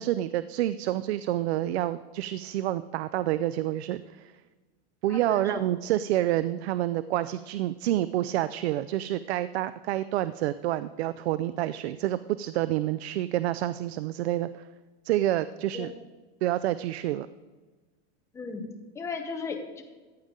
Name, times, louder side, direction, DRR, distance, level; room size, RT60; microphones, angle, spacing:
voice 1, 0.0-4.3 5.0-14.7 15.0-15.9 16.4-17.3, right 14 dB, 75° right, 14 dB, 0.5 m, -28 dB
voice 2, 5.1-5.7 15.7-15.9 18.3-18.7 18.9-19.8, left 4 dB, 10° left, 4 dB, 0.7 m, -35 dB
14.5 x 9.0 x 3.7 m, 1.3 s
supercardioid pair, 170°, 32 cm